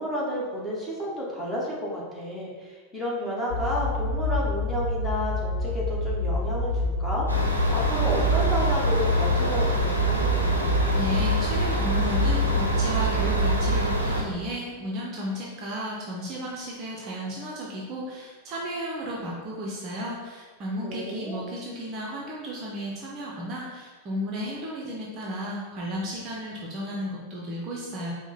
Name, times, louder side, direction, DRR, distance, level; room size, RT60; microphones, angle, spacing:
voice 1, 0.0-10.7 20.8-21.4, equal, 5° left, -6 dB, 1.2 m, -31 dB
sound 1, 3.5-13.8, left 2 dB, 65° left, 0.7 m, -28 dB
sound 2, 7.3-14.2, right 2 dB, 90° right, 0.6 m, -25 dB
voice 2, 10.9-28.1, equal, 35° right, -3 dB, 0.7 m, -33 dB
4.8 x 2.1 x 4.0 m, 1.4 s
figure-of-eight pair, 90°, 0 cm